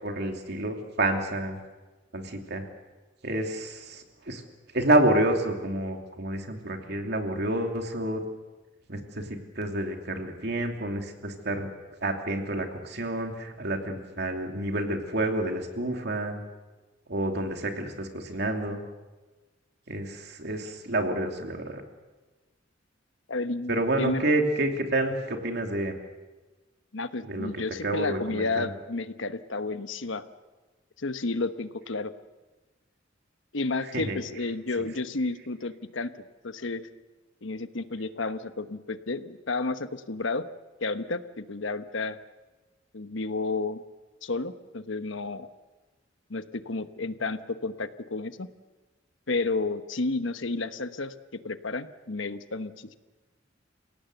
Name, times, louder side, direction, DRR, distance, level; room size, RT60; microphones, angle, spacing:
voice 1, 0.0-1.6 2.1-2.6 3.2-4.4 4.7-8.2 8.9-11.7 12.0-16.4 17.1-18.8 19.9-21.8 23.7-25.9 27.3-27.5 27.8-28.7 33.9-34.2, right 1 dB, 60° right, 4 dB, 2.9 m, -29 dB
voice 2, 23.3-24.2 26.9-30.2 31.0-32.1 33.5-36.9 37.4-40.4 40.8-42.2 42.9-43.8 44.2-45.5 46.3-48.5 49.3-51.1 51.4-52.9, left 3 dB, 80° left, 11 dB, 1.1 m, -31 dB
29.0 x 17.5 x 8.0 m, 1.2 s
head